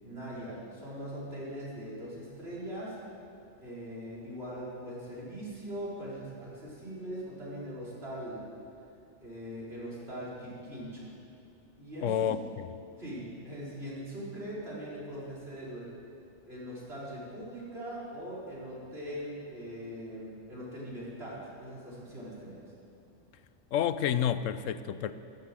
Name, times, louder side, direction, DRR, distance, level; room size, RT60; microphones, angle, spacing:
voice 1, 0.0-3.0 3.6-8.4 9.2-11.1 11.8-12.3 13.0-15.9 16.4-22.6, equal, 50° right, -7 dB, 4.8 m, -41 dB
voice 2, 12.0-12.7 23.7-25.1, left 9 dB, 75° left, 13 dB, 1.0 m, -29 dB
14.0 x 12.0 x 7.7 m, 2.6 s
omnidirectional pair, 1.4 m